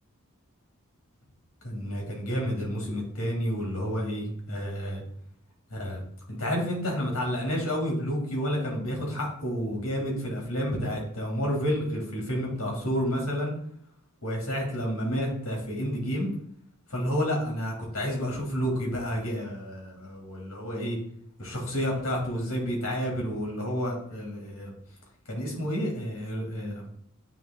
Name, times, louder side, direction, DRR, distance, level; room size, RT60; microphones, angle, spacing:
voice 1, 1.6-5.0 5.7-6.0 6.4-13.5 14.2-16.3 16.9-21.0 21.4-24.7 25.3-26.8, equal, 90° left, -1 dB, 2.9 m, -30 dB
9.1 x 3.3 x 3.9 m, 0.65 s
head